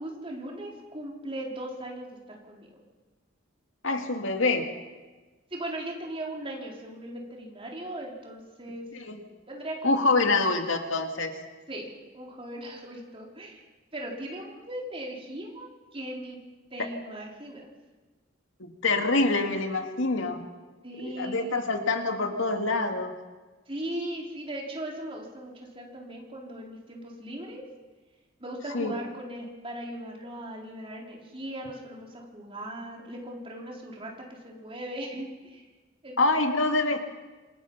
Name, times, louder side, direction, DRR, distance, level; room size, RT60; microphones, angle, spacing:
voice 1, 0.0-2.8 5.5-8.9 9.5-10.6 11.7-13.6 13.9-16.4 16.7-17.7 20.8-21.6 23.7-27.6 28.4-35.6 36.0-36.1 36.4-36.6, right 1 dB, 30° right, -1 dB, 4.2 m, -38 dB
voice 2, 3.8-4.7 8.9-9.2 9.8-11.4 18.6-20.4 21.0-23.2 28.7-28.9 36.2-37.1, left 3 dB, 85° left, 5 dB, 2.2 m, -26 dB
27.0 x 20.0 x 5.7 m, 1.3 s
head